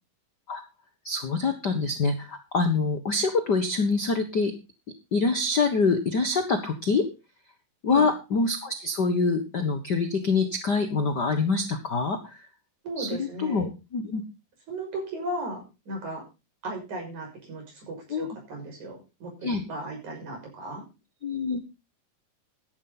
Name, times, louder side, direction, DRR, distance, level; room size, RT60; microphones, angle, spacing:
voice 1, 1.0-4.5 5.1-7.1 7.8-12.5 13.0-14.2 18.1-18.3 19.4-19.6 21.2-21.6, left 4 dB, 55° left, 7 dB, 1.2 m, -25 dB
voice 2, 12.8-13.7 14.7-16.2 16.6-20.8, right 1 dB, 55° right, 2 dB, 7.6 m, -36 dB
14.5 x 11.5 x 4.0 m, 0.29 s
omnidirectional pair, 4.0 m